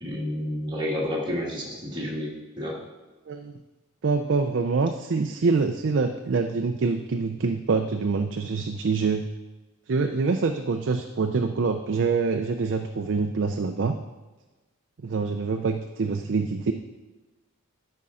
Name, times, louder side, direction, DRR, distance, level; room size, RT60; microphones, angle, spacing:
voice 1, 0.0-2.3 2.6-2.8, left 1 dB, 20° right, -4 dB, 1.8 m, -30 dB
voice 2, 3.3-3.6 4.0-9.3 9.9-13.9 15.0-16.7, right 4 dB, 60° right, 5 dB, 0.4 m, -25 dB
12.5 x 5.3 x 3.7 m, 1.2 s
head